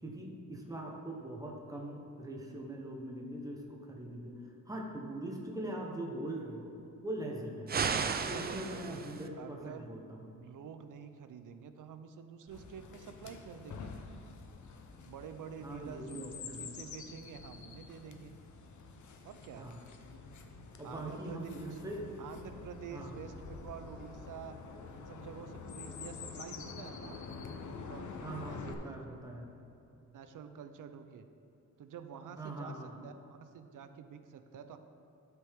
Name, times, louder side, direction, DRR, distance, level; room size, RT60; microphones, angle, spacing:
voice 1, 0.0-6.7 7.0-7.9 8.3-10.2 15.6-16.7 19.6-19.8 20.8-22.1 22.9-23.2 28.2-29.5 32.4-33.0, right 1 dB, 10° right, 0 dB, 1.0 m, -42 dB
sound 1, 7.7-9.3, right 6 dB, 30° right, 0.4 m, -34 dB
voice 2, 8.2-9.0 9.4-9.9 10.3-13.9 15.1-18.3 19.2-19.7 20.8-21.5 22.2-24.6 24.9-27.2 27.9-28.1 28.5-29.0 30.1-31.3 31.8-32.8 33.0-33.1 33.4-34.8, right 7 dB, 80° right, 9 dB, 0.6 m, -48 dB
Chirp tweet, 12.5-28.7, left 5 dB, 70° left, 0.8 m, -47 dB
12.0 x 6.1 x 3.6 m, 3.0 s
wide cardioid pair, 165°, 31 cm